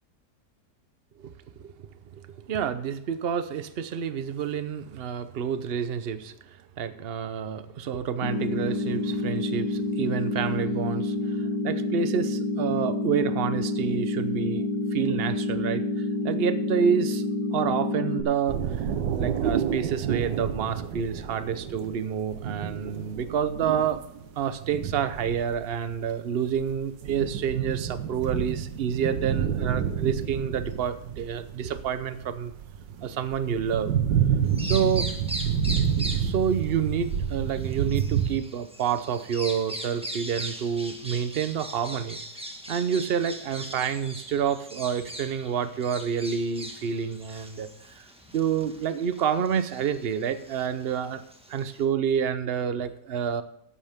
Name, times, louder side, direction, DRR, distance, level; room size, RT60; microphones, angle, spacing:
voice 1, 2.1-17.2 17.5-24.0 24.4-32.5 33.0-33.9 34.6-35.1 36.2-42.2 42.7-48.0 48.3-51.2 51.5-53.4, right 7 dB, 65° right, 12 dB, 0.6 m, -28 dB
sound 1, 8.2-18.2, left 2 dB, 80° left, 2.3 m, -28 dB
sound 2, 18.5-26.0 26.4-38.4, right 8 dB, 85° right, 1.6 m, -29 dB
Bird vocalization bird call bird song, 34.4-51.8, right 1 dB, 5° right, 1.2 m, -40 dB
14.0 x 11.0 x 3.6 m, 0.72 s
omnidirectional pair, 1.9 m